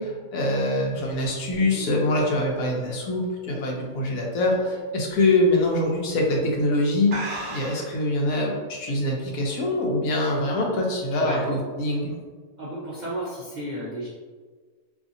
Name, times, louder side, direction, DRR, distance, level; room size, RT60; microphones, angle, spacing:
voice 1, 0.0-7.2 7.5-12.1, left 1 dB, 75° left, -1 dB, 1.0 m, -24 dB
sound 1, 0.9-4.1 4.5-4.8 5.2-5.3 6.1-6.3 6.6-6.7 7.1-8.0, right 2 dB, 55° right, 0.9 m, -36 dB
voice 2, 12.6-14.1, right 1 dB, 75° right, -6 dB, 0.4 m, -32 dB
2.7 x 2.5 x 2.5 m, 1.5 s
omnidirectional pair, 1.5 m